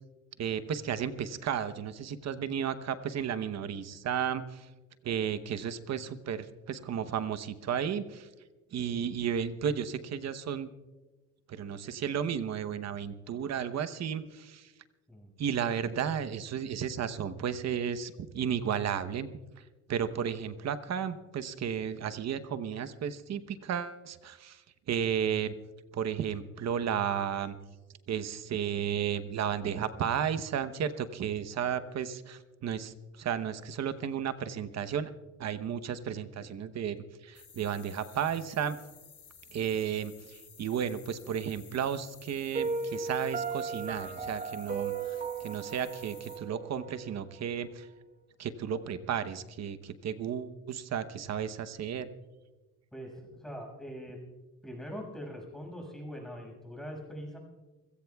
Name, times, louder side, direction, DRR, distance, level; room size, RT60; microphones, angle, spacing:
voice 1, 0.4-4.7 5.0-8.3 8.7-10.7 11.5-14.7 15.4-19.3 19.9-24.6 24.9-25.5 25.9-27.6 28.1-35.1 35.4-36.9 37.2-38.8 39.5-45.2 45.4-47.9 48.4-52.1, right 8 dB, 55° right, 11 dB, 1.0 m, -33 dB
sound 1, 37.3-46.4, left 7 dB, 45° left, 3.7 m, -54 dB
Piano, 42.5-47.5, right 5 dB, 25° right, 1.2 m, -36 dB
voice 2, 52.9-54.2 54.6-57.4, equal, ahead, 0 dB, 6.1 m, -42 dB
29.0 x 17.0 x 2.4 m, 1.2 s
cardioid pair, 95°, 32 cm